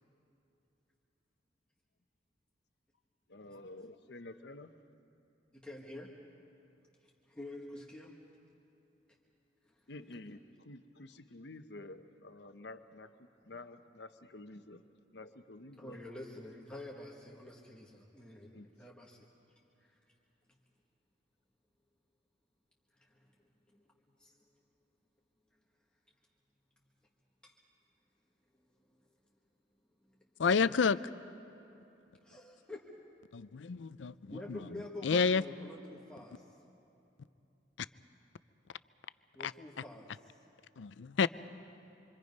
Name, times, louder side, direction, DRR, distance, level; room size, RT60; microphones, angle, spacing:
voice 1, 3.3-4.7 9.9-14.8 15.1-16.0 18.5-18.7, left 2 dB, 65° left, 8 dB, 0.9 m, -50 dB
voice 2, 5.5-6.1 7.0-8.1 9.6-9.8 15.8-19.2 19.8-20.0 23.0-23.3 23.7-23.8 24.2-24.4 27.4-27.6 30.0-30.3 32.2-33.0 34.3-36.4 39.3-40.3, left 1 dB, 5° left, -3 dB, 1.6 m, -48 dB
voice 3, 30.4-31.0 33.3-34.6 35.0-35.4 39.4-39.5 40.8-41.3, left 5 dB, 80° left, 16 dB, 0.5 m, -29 dB
26.5 x 25.0 x 5.4 m, 2.9 s
head